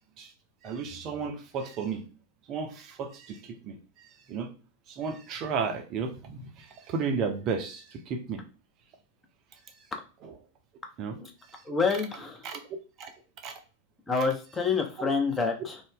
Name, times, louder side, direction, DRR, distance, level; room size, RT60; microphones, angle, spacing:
voice 1, 0.6-2.1 2.5-4.5 4.9-8.4 10.2-10.3 11.0-11.2 11.5-11.6 12.4-12.6 13.0-13.1 13.4-13.5 15.0-15.1, right 5 dB, 35° right, 5 dB, 0.5 m, -34 dB
voice 2, 11.7-12.4 14.1-15.8, left 4 dB, 15° left, 3 dB, 0.6 m, -27 dB
2.5 x 2.1 x 3.7 m, 0.35 s
figure-of-eight pair, 90°, 0 cm